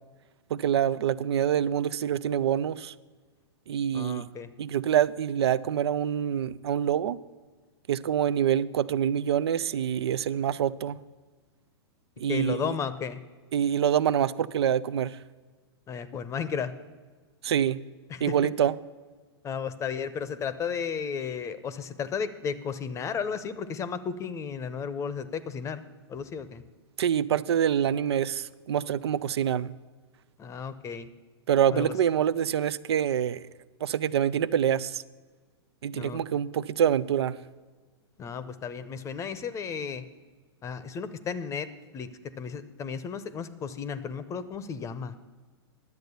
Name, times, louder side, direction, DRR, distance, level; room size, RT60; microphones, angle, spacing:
voice 1, 0.5-2.9 3.7-4.2 4.6-7.2 7.9-11.0 12.2-12.7 13.5-15.2 17.4-17.8 18.2-18.7 27.0-29.7 31.5-33.5 33.8-35.0 35.8-37.3, right 9 dB, 75° right, 16 dB, 0.4 m, -26 dB
voice 2, 3.9-4.5 12.3-13.2 15.9-16.7 18.1-18.3 19.4-25.8 26.1-26.6 30.4-31.1 31.7-31.9 35.9-36.2 38.2-40.0 40.6-41.7 41.9-42.1 42.4-45.1, left 6 dB, 20° left, 14 dB, 0.7 m, -34 dB
11.0 x 7.9 x 6.8 m, 1.4 s
hypercardioid pair, 120°, 14 cm